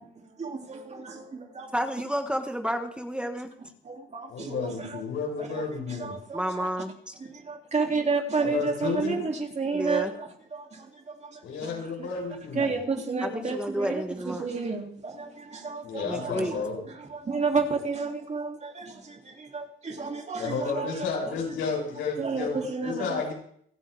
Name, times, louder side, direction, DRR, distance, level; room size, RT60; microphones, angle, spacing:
voice 1, 0.0-1.9 3.8-5.0 5.4-6.7 7.2-12.1 12.5-21.1 22.2-23.3, right 4 dB, 35° right, 2.9 m, -32 dB
voice 2, 1.7-3.5 6.3-7.1 9.7-10.1 13.2-14.5 16.0-16.6, equal, 5° right, 1.4 m, -30 dB
voice 3, 4.3-6.1 8.4-9.2 11.4-12.7 15.8-16.8 20.4-22.6 22.8-23.3, left 5 dB, 85° left, 7.6 m, -31 dB
28.0 x 9.6 x 3.6 m
cardioid pair, 90°, 20 cm